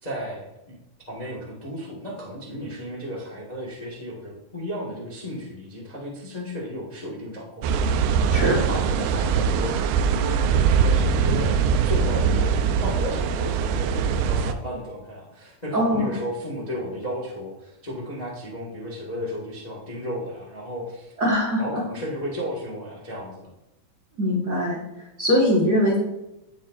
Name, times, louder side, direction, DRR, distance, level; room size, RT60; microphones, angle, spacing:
voice 1, 0.0-0.8 1.1-8.0 8.3-11.5 11.8-21.1 21.6-23.5, equal, 35° left, -4 dB, 0.6 m, -34 dB
sound 1, 7.6-14.5, right 6 dB, 90° right, 2.3 m, -22 dB
voice 2, 8.3-8.6 15.7-16.1 21.2-21.8 24.2-24.8 25.2-26.0, equal, 45° right, -5 dB, 1.2 m, -21 dB
15.5 x 5.4 x 2.5 m, 0.92 s
omnidirectional pair, 3.9 m